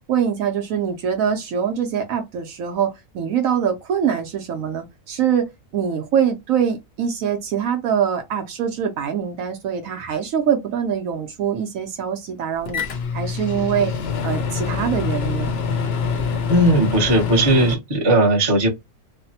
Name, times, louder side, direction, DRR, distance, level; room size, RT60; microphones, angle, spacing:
voice 1, 0.1-5.5 5.7-12.8 13.1-13.9 14.2-15.5, right 8 dB, 70° right, 1.0 m, -23 dB
Microwave oven, 12.7-17.8, left 5 dB, 60° left, 0.7 m, -25 dB
voice 2, 16.5-18.7, right 1 dB, 20° right, 0.8 m, -17 dB
3.2 x 2.1 x 2.7 m
omnidirectional pair, 1.6 m